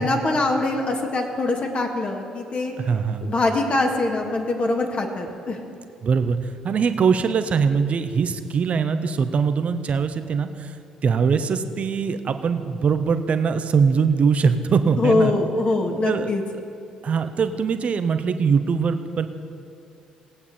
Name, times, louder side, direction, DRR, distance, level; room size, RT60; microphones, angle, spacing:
voice 1, 0.0-2.7 3.2-5.6 15.0-16.4, left 2 dB, 40° left, 2 dB, 1.8 m, -23 dB
voice 2, 2.8-3.3 6.0-10.8 11.0-15.3 16.1-16.3 17.0-19.3, right 6 dB, 45° right, 10 dB, 0.8 m, -22 dB
18.0 x 8.5 x 4.2 m, 2.6 s
hypercardioid pair, 45°, 3 cm